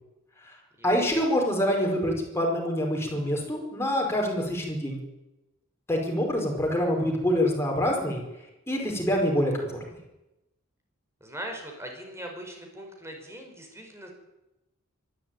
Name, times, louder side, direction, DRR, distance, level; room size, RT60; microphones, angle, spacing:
voice 1, 0.8-5.0 5.9-8.2 8.7-9.8, equal, 15° left, 0 dB, 5.2 m, -26 dB
voice 2, 11.2-14.1, right 1 dB, 15° right, 3 dB, 5.1 m, -40 dB
24.0 x 12.5 x 9.2 m, 0.96 s
head